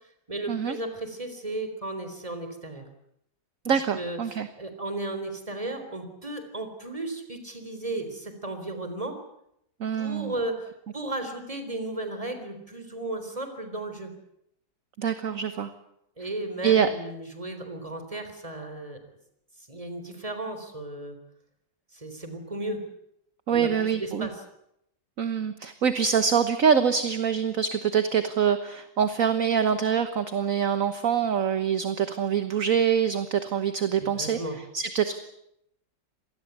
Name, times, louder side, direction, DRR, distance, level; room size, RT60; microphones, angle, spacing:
voice 1, 0.3-2.8 3.9-9.2 10.0-14.1 16.2-19.0 19.7-21.2 21.9-22.8 23.5-24.3 34.2-34.6, right 2 dB, 15° right, 8 dB, 3.9 m, -35 dB
voice 2, 3.6-4.5 9.8-10.3 15.0-15.7 16.6-16.9 23.5-24.3 25.2-34.4 34.7-35.2, right 7 dB, 50° right, 10 dB, 1.5 m, -25 dB
26.5 x 19.5 x 8.3 m, 0.77 s
omnidirectional pair, 2.0 m